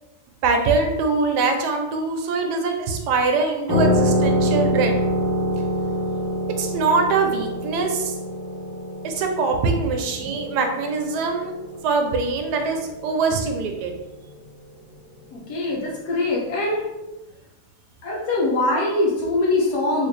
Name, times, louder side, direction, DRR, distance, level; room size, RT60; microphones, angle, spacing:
voice 1, 0.4-4.9 6.6-8.1 9.0-11.5 11.8-13.9, right 4 dB, 75° right, 4 dB, 1.1 m, -23 dB
sound 1, 3.7-12.9, equal, 15° right, 0.9 m, -25 dB
voice 2, 15.3-16.8 18.0-20.1, left 2 dB, 70° left, -4 dB, 1.4 m, -22 dB
3.2 x 2.8 x 3.2 m, 1.0 s
omnidirectional pair, 1.8 m